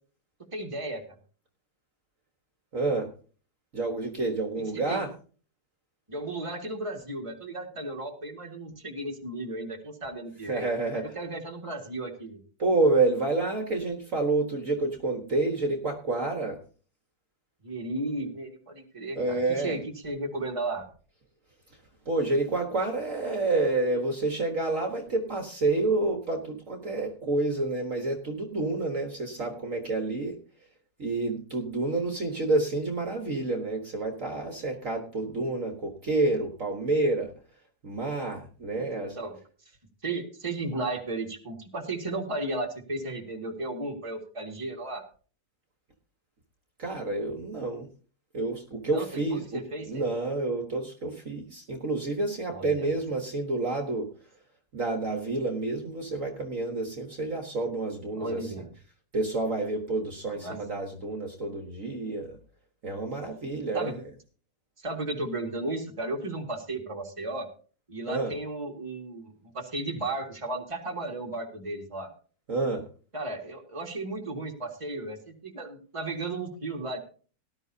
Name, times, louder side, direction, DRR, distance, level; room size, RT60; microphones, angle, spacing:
voice 1, 0.5-1.0 4.7-5.0 6.1-10.6 10.9-12.4 17.6-20.9 39.2-39.4 40.0-45.0 48.8-50.0 52.5-52.9 58.2-58.7 60.4-60.6 63.7-63.9 64.8-67.5 67.9-72.1 73.1-77.0, right 2 dB, 20° right, 1 dB, 2.0 m, -34 dB
voice 2, 2.7-3.1 3.7-5.1 10.4-11.2 12.6-16.6 19.2-19.8 21.7-21.8 22.1-30.4 31.0-37.3 37.8-39.2 46.8-47.9 48.3-54.1 54.7-58.5 59.1-62.4 62.8-64.0 68.1-68.3 72.5-72.8, right 2 dB, 50° right, 3 dB, 1.7 m, -29 dB
18.5 x 12.0 x 2.8 m, 0.40 s
omnidirectional pair, 1.9 m